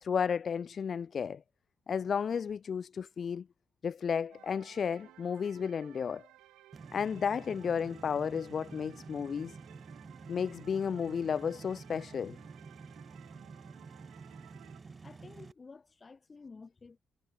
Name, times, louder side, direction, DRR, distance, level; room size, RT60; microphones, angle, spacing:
voice 1, 0.0-1.4 1.9-3.5 3.8-6.2 6.9-9.6 10.3-12.4, left 7 dB, 55° left, 0.4 m, -33 dB
sound 1, 4.3-14.8, right 15 dB, 85° right, 3.9 m, -58 dB
sound 2, 6.7-15.5, right 4 dB, 40° right, 6.7 m, -50 dB
voice 2, 15.0-17.0, left 4 dB, 35° left, 3.4 m, -52 dB
supercardioid pair, 65°, 0 cm